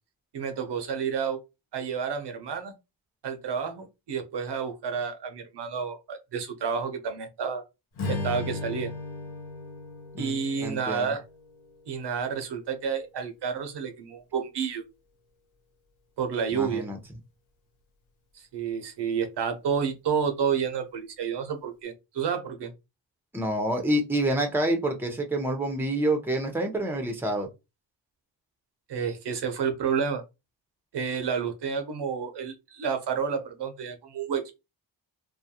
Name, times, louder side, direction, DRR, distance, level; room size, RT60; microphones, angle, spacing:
voice 1, 0.3-1.4 1.7-2.7 3.2-7.6 8.1-8.9 10.2-11.2 11.9-14.8 16.2-16.9 18.3-22.7 28.9-30.2 30.9-34.5, right 6 dB, 60° right, 0.7 m, -30 dB
Strum, 7.9-12.4, left 3 dB, 75° left, 0.9 m, -37 dB
voice 2, 10.1-11.1 16.5-17.0 23.3-27.5, right 1 dB, 5° right, 0.7 m, -27 dB
2.3 x 2.1 x 2.8 m
supercardioid pair, 50°, 46 cm